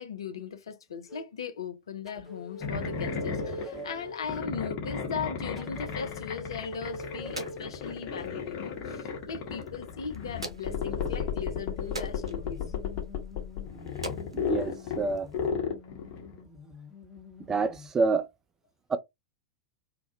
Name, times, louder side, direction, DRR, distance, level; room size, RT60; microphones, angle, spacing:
voice 1, 0.0-12.6, left 6 dB, 65° left, 0.5 m, -38 dB
sound 1, 1.1-1.3 2.1-4.3 5.6-7.7 10.1-17.9, equal, ahead, 0.8 m, -45 dB
sound 2, 2.6-16.4, left 6 dB, 40° left, 0.9 m, -34 dB
sound 3, 6.5-15.5, right 2 dB, 80° right, 0.5 m, -46 dB
voice 2, 14.3-15.3 17.5-18.3 18.9-19.0, right 4 dB, 15° right, 0.3 m, -27 dB
2.2 x 2.1 x 2.7 m
figure-of-eight pair, 90°, 3 cm